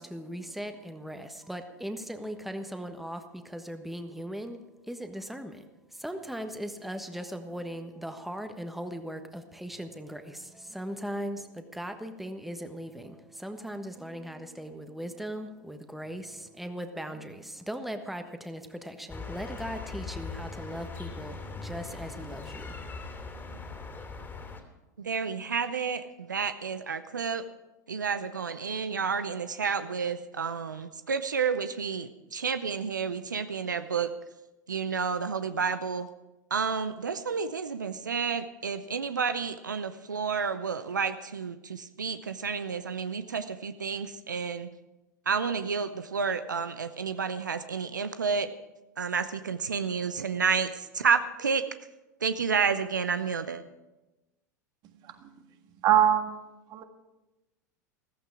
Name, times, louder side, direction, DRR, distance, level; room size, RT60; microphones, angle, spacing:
voice 1, 0.0-5.6 5.9-22.9, equal, ahead, 7 dB, 1.3 m, -39 dB
sound 1, 19.1-24.6, left 4 dB, 20° left, 2.7 m, -40 dB
voice 2, 25.0-27.5 27.9-34.1 34.7-36.1 36.5-44.7 45.3-48.5 49.0-51.6 52.2-53.6, right 6 dB, 85° right, 11 dB, 0.6 m, -30 dB
voice 3, 55.8-56.4 56.7-56.8, right 10 dB, 45° right, 7 dB, 1.7 m, -23 dB
14.5 x 14.5 x 4.8 m, 1.0 s
figure-of-eight pair, 85°, 10 cm